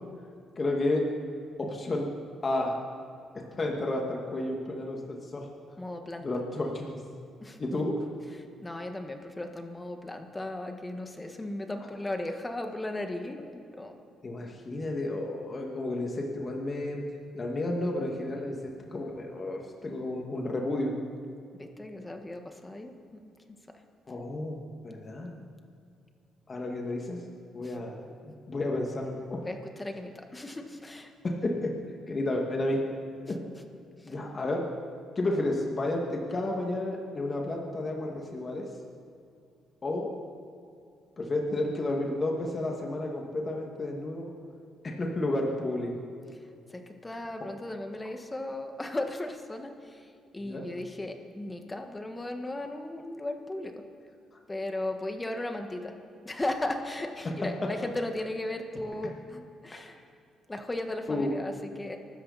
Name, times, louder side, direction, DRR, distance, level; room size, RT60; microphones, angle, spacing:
voice 1, 0.6-1.1 1.6-2.1 2.4-2.8 3.6-5.5 6.2-7.0 7.6-8.0 14.2-17.0 17.3-21.0 24.1-25.3 26.5-27.2 27.5-29.4 31.2-31.7 32.1-32.8 33.3-33.4 34.0-34.7 35.2-38.7 39.8-40.1 41.2-44.3 45.0-45.9 50.4-50.7 57.4-57.7 61.1-61.3, left 2 dB, 35° left, 0 dB, 2.2 m, -31 dB
voice 2, 5.8-6.3 7.4-7.6 8.6-13.9 21.5-23.3 27.6-27.8 29.4-31.1 33.2-33.3 34.0-34.2 46.3-46.4 46.7-53.8 54.5-55.9 56.2-60.0 60.5-62.0, left 1 dB, 15° left, 5 dB, 1.7 m, -36 dB
23.5 x 13.0 x 4.3 m, 2.4 s
cardioid pair, 90°, 0 cm